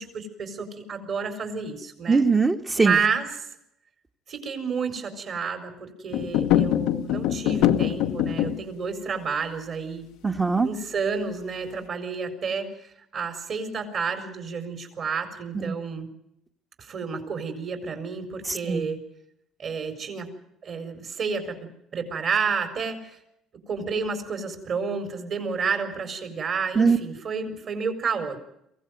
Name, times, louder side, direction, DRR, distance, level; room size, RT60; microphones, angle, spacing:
voice 1, 0.0-2.3 2.7-3.3 4.3-10.1 10.6-16.1 16.8-19.0 19.6-20.3 20.6-21.6 21.9-23.2 23.7-28.4, right 5 dB, 55° right, 6 dB, 4.4 m, -30 dB
voice 2, 2.1-2.9 10.2-10.7 15.6-15.7 18.7-18.9 26.8-27.0, right 4 dB, 25° right, 4 dB, 1.4 m, -21 dB
sound 1, 6.1-8.7, left 12 dB, 80° left, 1.0 m, -23 dB
23.5 x 16.0 x 9.3 m, 0.78 s
supercardioid pair, 90°, 0 cm